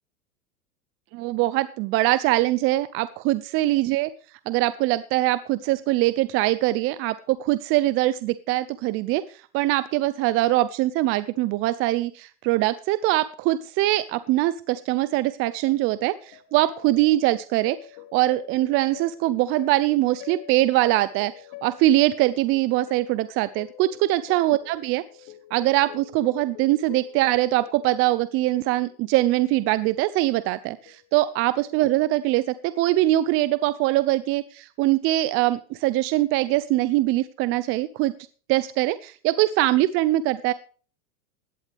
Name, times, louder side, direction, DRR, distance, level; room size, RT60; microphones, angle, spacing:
voice 1, 1.1-4.1 4.5-9.2 9.5-17.8 18.1-21.3 21.6-25.0 25.5-38.1 38.5-40.5, right 16 dB, 30° right, 15 dB, 0.5 m, -22 dB
sound 1, 15.5-30.3 30.9-31.4 31.7-31.9 32.9-33.1, left 13 dB, 45° left, 2.2 m, -46 dB
16.5 x 11.0 x 3.4 m, 0.40 s
hypercardioid pair, 125°, 44 cm